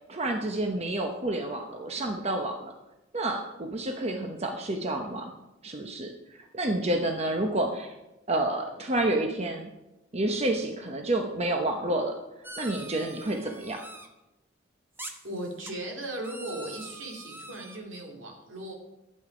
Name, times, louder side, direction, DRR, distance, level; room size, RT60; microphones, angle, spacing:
voice 1, 0.1-2.7 3.1-5.3 5.6-7.9 8.3-9.7 10.1-12.1 12.6-13.8, right 1 dB, 35° right, 3 dB, 0.8 m, -29 dB
sound 1, 12.4-14.1 15.0-15.7 16.2-17.8, right 1 dB, 10° right, 1.1 m, -44 dB
voice 2, 15.2-18.7, right 1 dB, 70° right, 1 dB, 2.5 m, -37 dB
12.0 x 8.6 x 5.0 m, 0.98 s
head